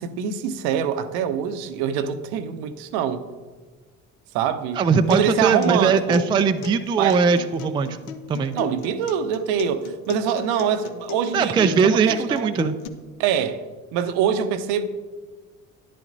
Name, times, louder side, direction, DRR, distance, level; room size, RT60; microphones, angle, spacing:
voice 1, 0.0-3.3 4.3-4.8 5.1-6.2 7.0-7.2 8.5-12.7 13.2-13.6 13.9-14.9, right 8 dB, 60° right, 0.7 m, -24 dB
voice 2, 4.8-8.0 8.3-8.5 11.3-12.8, right 5 dB, 15° right, 0.3 m, -20 dB
Acoustic guitar, 4.9-12.9, left 6 dB, 65° left, 0.8 m, -36 dB
10.5 x 10.5 x 2.6 m
figure-of-eight pair, 55°, 43 cm